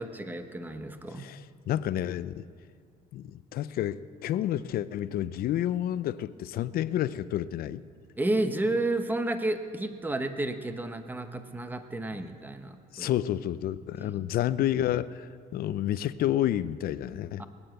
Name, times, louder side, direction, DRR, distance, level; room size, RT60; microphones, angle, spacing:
voice 1, 0.0-1.3 8.2-13.1 14.0-14.2 17.4-17.5, right 2 dB, 10° right, 8 dB, 1.0 m, -31 dB
voice 2, 1.1-2.5 3.1-7.8 12.1-12.2 12.9-17.4, left 12 dB, 60° left, 16 dB, 0.5 m, -30 dB
20.0 x 9.0 x 7.9 m, 2.2 s
cardioid pair, 110°, 17 cm